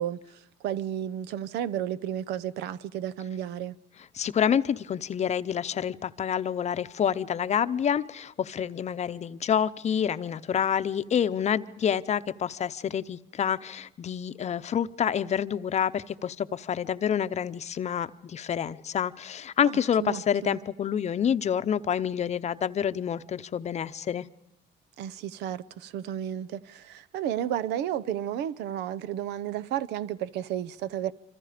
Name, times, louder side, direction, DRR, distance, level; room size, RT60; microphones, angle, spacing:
voice 1, 0.0-3.8 19.7-20.6 25.0-31.1, right 10 dB, 80° right, 0.8 m, -32 dB
voice 2, 4.1-24.3, left 8 dB, 40° left, 0.7 m, -28 dB
26.0 x 26.0 x 5.1 m
cardioid pair, 110°, 17 cm